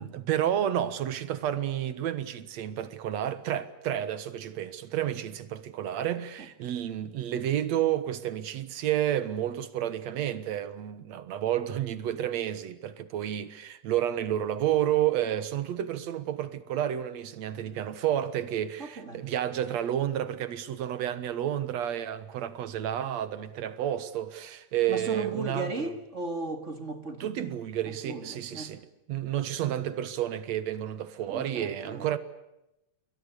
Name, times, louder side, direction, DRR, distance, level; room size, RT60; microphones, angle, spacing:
voice 1, 0.0-25.7 27.2-28.8 29.1-32.2, right 11 dB, 65° right, 2.5 m, -30 dB
voice 2, 18.8-19.3 24.9-27.3 27.8-28.7 31.3-32.1, right 3 dB, 30° right, 1.8 m, -36 dB
29.5 x 22.5 x 6.8 m
omnidirectional pair, 3.4 m